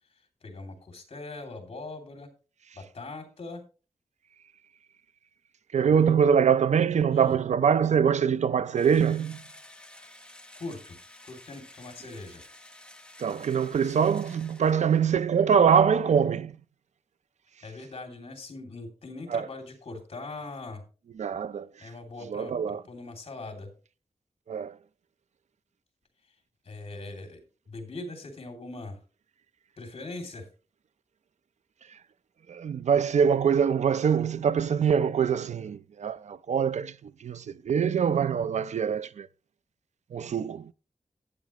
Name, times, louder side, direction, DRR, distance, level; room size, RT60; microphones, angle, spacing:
voice 1, 0.4-2.3 2.7-3.6 5.8-6.1 7.1-7.4 10.0-10.1 10.5-11.0 11.2-12.4 17.6-20.8 21.8-23.7 26.6-27.4 27.7-29.0 29.8-30.5, left 2 dB, 55° left, 2.8 m, -41 dB
voice 2, 5.7-9.4 13.2-16.6 19.3-19.5 21.2-21.9 22.3-22.8 24.5-24.8 31.9-32.0 32.5-39.3 40.1-40.7, right 7 dB, 80° right, 0.4 m, -24 dB
Engine / Drill, 8.7-15.3, left 1 dB, 10° left, 0.8 m, -51 dB
12.0 x 9.2 x 3.0 m
wide cardioid pair, 115°, 12 cm